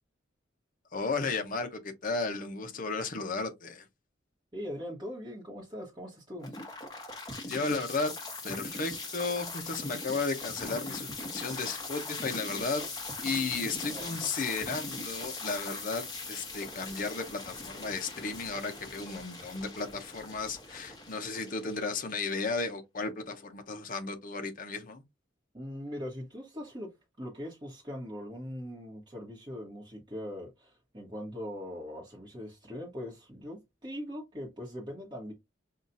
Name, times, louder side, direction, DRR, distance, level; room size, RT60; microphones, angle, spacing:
voice 1, 0.9-3.9 7.5-8.1 8.4-12.8 13.2-25.0, left 4 dB, 45° left, 0.8 m, -34 dB
voice 2, 4.5-6.5 13.9-14.2 25.5-35.3, equal, 20° right, 1.1 m, -41 dB
sound 1, 6.4-22.4, left 3 dB, 20° left, 1.1 m, -40 dB
5.6 x 2.4 x 2.6 m
head